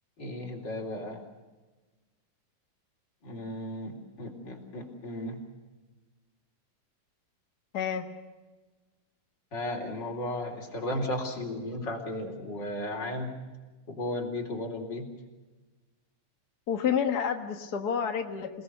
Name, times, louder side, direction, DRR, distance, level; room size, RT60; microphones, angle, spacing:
voice 1, 0.2-1.2 3.2-5.4 9.5-13.3 13.9-15.1, left 1 dB, 30° left, 1 dB, 4.2 m, -35 dB
voice 2, 7.7-8.0 16.7-18.5, left 7 dB, 85° left, 5 dB, 0.8 m, -29 dB
28.5 x 19.0 x 6.8 m, 1.2 s
omnidirectional pair, 4.3 m